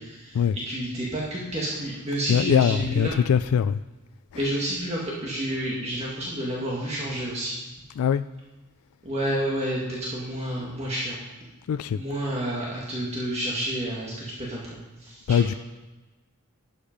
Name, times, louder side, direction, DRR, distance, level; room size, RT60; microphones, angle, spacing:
voice 1, 0.0-0.4 0.7-3.1 4.3-7.7 9.0-11.2 11.9-14.7 15.0-15.4, right 1 dB, 30° right, -4 dB, 1.8 m, -30 dB
voice 2, 2.3-3.8 4.3-4.4 8.0-8.2 11.7-12.0 15.3-15.5, left 8 dB, 80° left, 12 dB, 0.3 m, -22 dB
12.0 x 8.7 x 5.2 m, 1.2 s
head